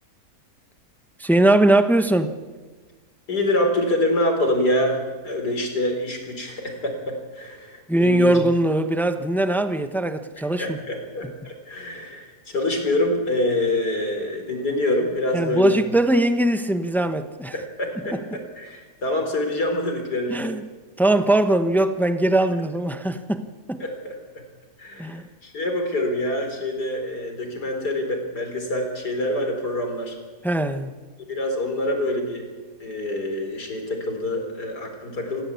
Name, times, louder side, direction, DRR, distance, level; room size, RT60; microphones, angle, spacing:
voice 1, 1.2-2.3 7.9-10.8 15.3-17.5 18.1-18.2 20.3-20.6 21.0-23.8 25.0-25.3 30.4-30.9, right 1 dB, ahead, 9 dB, 0.9 m, -21 dB
voice 2, 3.3-8.4 10.6-15.7 17.5-20.3 23.8-24.4 24.8-30.2 31.3-32.5 32.8-35.4, left 1 dB, 80° left, 4 dB, 4.8 m, -26 dB
27.0 x 16.0 x 8.6 m, 1.3 s
omnidirectional pair, 1.7 m